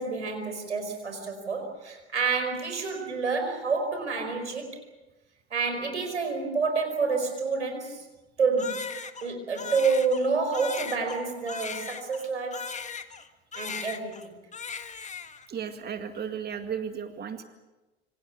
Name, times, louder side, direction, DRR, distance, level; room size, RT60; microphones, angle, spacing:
voice 1, 0.0-4.8 5.5-8.0 8.4-8.9 9.2-12.7 13.5-14.3, right 4 dB, 90° right, 5 dB, 5.0 m, -28 dB
Crying sobbing, 8.6-13.3 13.5-14.3 14.5-15.5, left 5 dB, 20° left, 1.7 m, -38 dB
voice 2, 15.5-17.4, right 7 dB, 30° right, 7 dB, 2.1 m, -34 dB
26.5 x 24.5 x 6.1 m, 1.1 s
hypercardioid pair, 75°, 34 cm